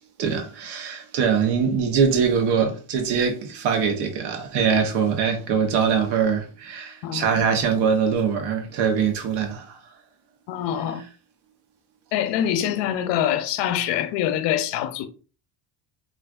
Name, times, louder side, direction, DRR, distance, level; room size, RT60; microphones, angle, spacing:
voice 1, 0.2-9.8, right 6 dB, 70° right, 0.8 m, -23 dB
voice 2, 10.5-11.0 12.1-15.1, left 10 dB, 85° left, 0.5 m, -24 dB
3.4 x 2.5 x 2.3 m
cardioid pair, 175°, 42 cm